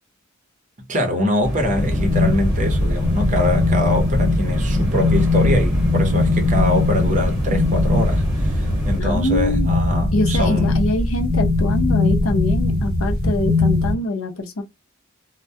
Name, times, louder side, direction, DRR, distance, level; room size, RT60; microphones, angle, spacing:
voice 1, 0.9-10.8, left 1 dB, 35° right, 0.7 m, -23 dB
sound 1, 1.4-9.0, left 1 dB, 5° right, 1.1 m, -27 dB
sound 2, 1.8-13.9, left 2 dB, 50° left, 0.9 m, -20 dB
voice 2, 9.0-9.7 10.1-14.6, left 1 dB, 80° left, 0.6 m, -24 dB
2.2 x 2.1 x 2.6 m
head